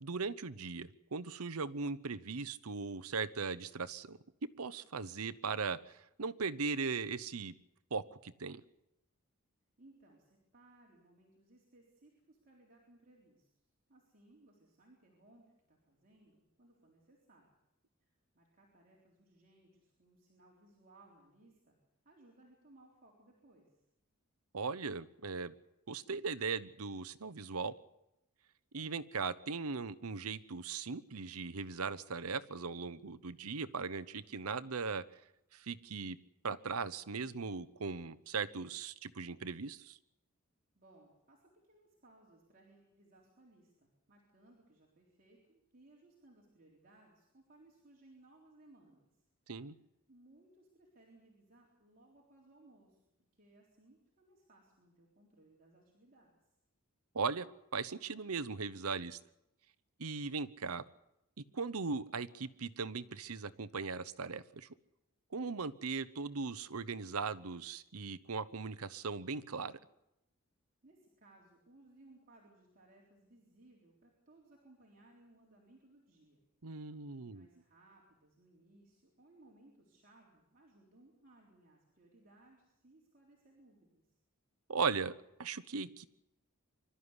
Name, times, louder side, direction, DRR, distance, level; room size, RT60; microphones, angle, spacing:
voice 1, 0.0-4.2 4.6-5.8 6.2-7.5 7.9-8.6 24.5-25.5 25.9-27.7 28.7-35.0 35.5-36.2 36.4-40.0 49.5-49.7 57.1-57.5 57.7-59.2 60.0-60.8 61.5-64.7 65.3-69.7 76.6-77.5 84.7-85.1 85.4-86.1, right 4 dB, 75° right, 15 dB, 0.9 m, -38 dB
voice 2, 9.8-13.5 13.9-17.5 18.0-18.1 18.3-21.8 22.0-23.8 40.7-49.1 50.1-53.0 53.3-56.4 70.8-76.4 77.1-84.0, right 2 dB, 40° right, -3 dB, 3.9 m, -64 dB
25.0 x 13.0 x 9.8 m, 0.88 s
head